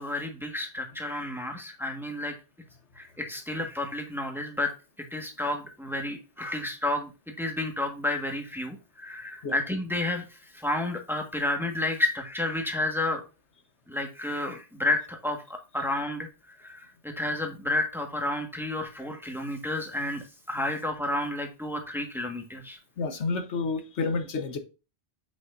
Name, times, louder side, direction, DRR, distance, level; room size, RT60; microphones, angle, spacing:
voice 1, 0.0-2.3 3.0-4.7 5.1-7.1 7.4-10.2 10.5-13.2 13.9-16.3 16.6-22.8, left 2 dB, ahead, 2 dB, 1.5 m, -31 dB
voice 2, 23.0-24.6, left 4 dB, 90° left, 8 dB, 1.4 m, -29 dB
7.9 x 6.1 x 2.6 m, 0.30 s
omnidirectional pair, 1.1 m